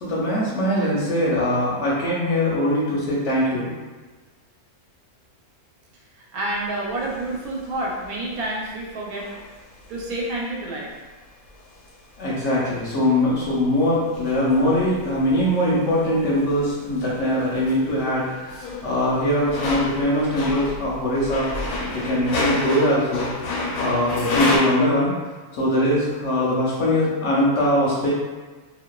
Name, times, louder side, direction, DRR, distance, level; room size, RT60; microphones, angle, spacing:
voice 1, 0.0-3.7 12.2-21.5 21.9-23.3 23.8-25.1 25.5-28.1, left 1 dB, 65° left, -6 dB, 0.8 m, -22 dB
voice 2, 6.3-9.3 9.9-10.9, right 1 dB, 80° right, -3 dB, 1.1 m, -28 dB
sound 1, 7.0-10.2 11.5-11.8 12.3-13.6 13.8-24.6, left 2 dB, 85° left, 1.1 m, -31 dB
2.6 x 2.1 x 2.2 m, 1.3 s
omnidirectional pair, 1.6 m